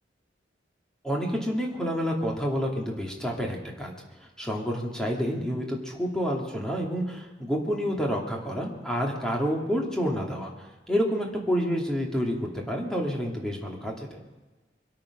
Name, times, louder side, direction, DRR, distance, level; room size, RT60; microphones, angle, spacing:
voice 1, 1.0-3.9 4.4-14.2, equal, 5° left, -1 dB, 2.4 m, -29 dB
24.0 x 8.9 x 6.0 m, 1.2 s
head